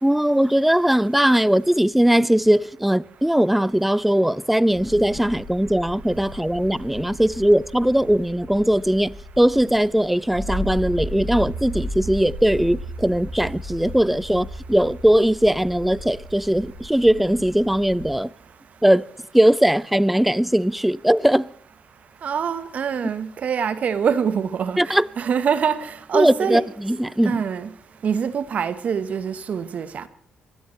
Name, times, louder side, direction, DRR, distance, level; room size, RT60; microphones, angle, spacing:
voice 1, 0.0-18.3 18.8-19.1 19.3-21.5 24.8-25.1 26.1-27.4, right 1 dB, 5° right, 0.5 m, -19 dB
sound 1, 4.7-18.1, equal, 85° right, 6.6 m, -35 dB
voice 2, 22.2-26.6 27.2-27.7 28.0-30.0, right 7 dB, 55° right, 1.1 m, -24 dB
24.5 x 16.5 x 3.2 m
hypercardioid pair, 50°, 3 cm